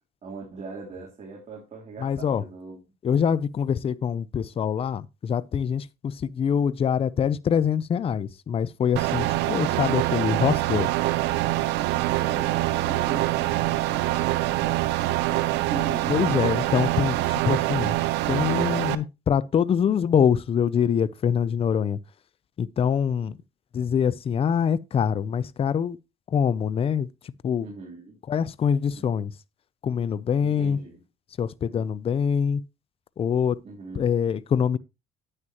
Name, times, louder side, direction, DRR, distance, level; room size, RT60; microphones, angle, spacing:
voice 1, 0.2-2.8 12.1-16.4 27.6-28.2 28.9-29.0 30.4-31.0 31.7-31.8 33.6-34.1, right 3 dB, 40° right, 3.3 m, -40 dB
voice 2, 2.0-2.4 3.0-10.9 16.1-17.9 18.3-22.0 22.6-23.4 23.7-26.0 26.3-27.1 27.4-27.7 28.3-29.3 29.8-30.8 31.4-32.6 33.2-33.6 34.0-34.8, left 7 dB, 35° left, 0.5 m, -24 dB
sound 1, 9.0-19.0, right 16 dB, 90° right, 0.6 m, -25 dB
9.8 x 8.9 x 2.9 m
cardioid pair, 110°, 17 cm